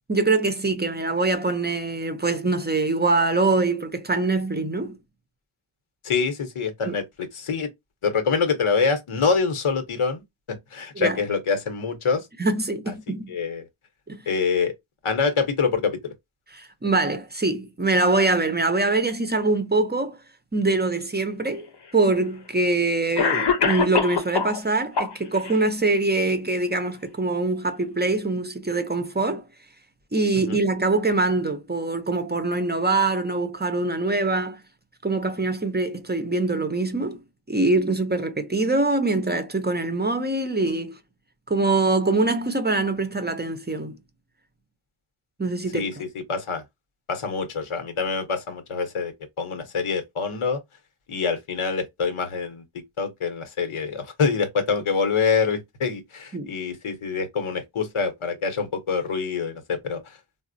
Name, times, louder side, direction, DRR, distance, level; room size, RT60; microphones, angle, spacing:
voice 1, 0.1-5.0 6.9-7.0 11.0-11.2 12.4-13.4 14.1-14.2 16.6-20.2 20.5-21.7 21.9-29.5 30.1-34.6 35.0-37.2 37.5-41.0 41.5-44.0 45.4-45.9 56.3-56.5, right 2 dB, 20° right, 0.5 m, -24 dB
voice 2, 6.0-7.7 8.0-12.3 12.9-13.0 13.3-13.7 14.3-14.7 15.0-16.1 30.5-30.6 45.7-46.6 47.1-50.6 51.1-52.6 53.0-60.2, left 5 dB, 90° left, 0.9 m, -25 dB
Cough, 21.5-21.6 22.6-22.7 23.2-24.6 25.0-25.6, left 6 dB, 55° left, 0.8 m, -23 dB
3.9 x 2.0 x 2.5 m
wide cardioid pair, 75°, 48 cm